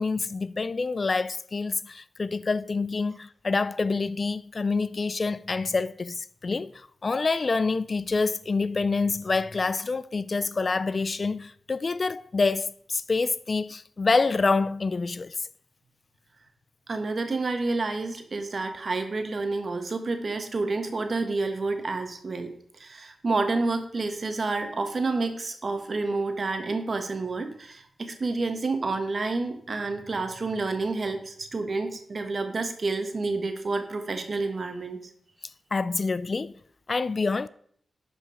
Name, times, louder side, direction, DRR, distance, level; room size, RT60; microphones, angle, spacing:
voice 1, 0.0-15.5 35.7-36.5 36.9-37.5, left 4 dB, 50° left, 0.4 m, -27 dB
voice 2, 16.9-22.5 22.8-35.0, right 3 dB, 50° right, 1.6 m, -29 dB
11.5 x 5.1 x 5.0 m
cardioid pair, 50°, 0 cm